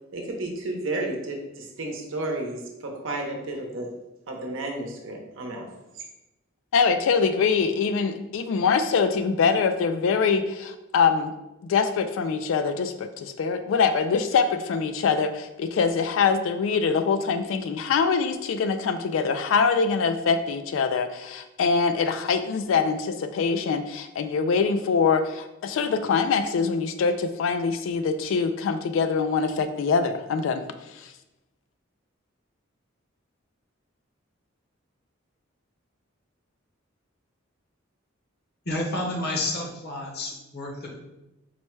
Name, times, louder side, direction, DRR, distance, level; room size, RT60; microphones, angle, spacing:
voice 1, 0.1-3.9 4.3-5.7 6.0-6.1, right 2 dB, 70° right, 1 dB, 0.8 m, -32 dB
voice 2, 6.7-11.3 11.6-31.1, left 5 dB, 70° left, 9 dB, 0.3 m, -24 dB
voice 3, 38.6-40.9, left 1 dB, 55° left, 0 dB, 0.9 m, -30 dB
4.3 x 2.2 x 4.5 m, 0.96 s
head